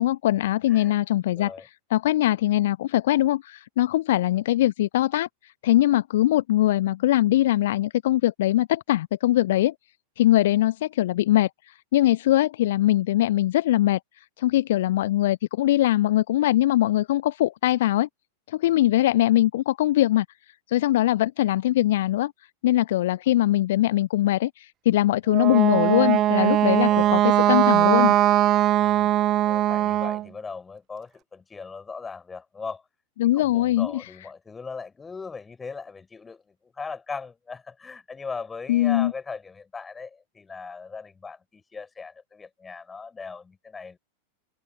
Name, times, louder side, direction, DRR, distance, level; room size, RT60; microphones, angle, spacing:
voice 1, 0.0-1.5 1.9-5.3 5.6-9.7 10.2-14.0 14.4-18.1 18.5-20.3 20.7-22.3 22.6-28.1 33.2-34.1 38.7-39.1, left 14 dB, 55° left, 0.7 m, -22 dB
voice 2, 1.3-1.7 26.7-27.2 28.8-29.1 29.4-32.8 33.3-44.0, left 4 dB, 15° left, 4.1 m, -39 dB
Wind instrument woodwind instrument, 25.3-30.3, right 13 dB, 35° right, 0.4 m, -20 dB
figure-of-eight pair, 90°, 0 cm